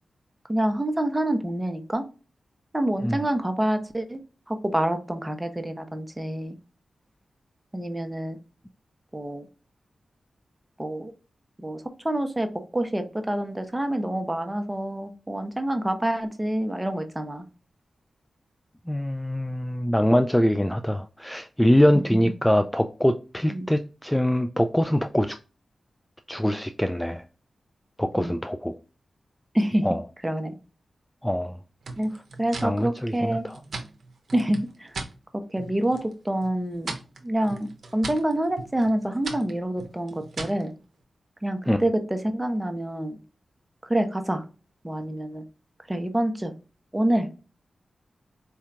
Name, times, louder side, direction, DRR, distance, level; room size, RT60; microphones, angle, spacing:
voice 1, 0.5-2.0 2.7-4.2 4.5-6.6 7.7-8.4 9.1-9.5 10.8-11.1 11.6-17.4 21.9-22.2 23.5-23.7 28.2-28.4 29.5-29.9 30.2-30.6 32.0-32.1 32.4-33.5 34.3-35.0 35.5-36.9 37.2-40.7 41.4-43.2 43.8-44.4 44.8-45.4 45.9-46.5 46.9-47.3, right 1 dB, 15° right, 0.8 m, -27 dB
voice 2, 18.9-25.4 26.3-27.2 28.0-28.8 29.8-30.0 31.2-31.6 32.6-33.5 41.7-41.8, equal, 10° left, 0.3 m, -23 dB
sound 1, 31.8-35.2 35.5-36.1 36.4-40.7, right 3 dB, 75° right, 0.7 m, -39 dB
4.4 x 2.7 x 2.4 m
cardioid pair, 55°, 0 cm